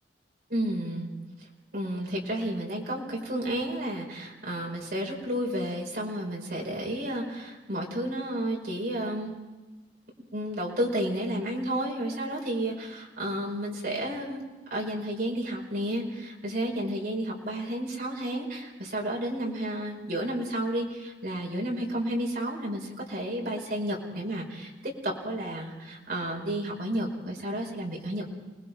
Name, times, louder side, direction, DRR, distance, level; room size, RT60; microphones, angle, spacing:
voice 1, 0.5-1.1 1.7-9.3 10.2-14.4 14.7-28.3, right 1 dB, 60° right, -1 dB, 5.0 m, -31 dB
29.0 x 20.0 x 4.6 m, 1.2 s
head